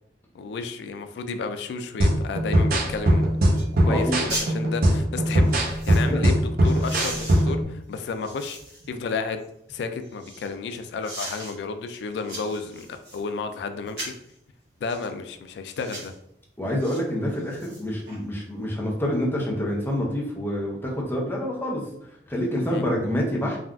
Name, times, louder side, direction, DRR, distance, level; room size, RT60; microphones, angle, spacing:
voice 1, 0.3-3.3 3.8-8.6 8.9-9.4 9.7-14.1 14.8-16.1 22.7-22.8, left 4 dB, 70° left, 8 dB, 0.3 m, -32 dB
sound 1, 2.0-7.6, right 1 dB, 55° right, 0.5 m, -21 dB
sound 2, 3.0-3.1 3.5-3.7 3.9-4.5 5.3-6.1 6.6-8.9 9.4-10.5 11.0-11.5 11.9-13.2 13.9-14.3 14.9-15.1 15.7-16.1 16.8-17.0 17.4-18.2 18.5-18.6, right 1 dB, 70° right, 1.4 m, -38 dB
voice 2, 3.9-4.2 6.1-6.2 16.6-21.8 22.3-23.6, equal, 15° left, -3 dB, 0.6 m, -27 dB
3.6 x 2.4 x 2.2 m, 0.75 s
head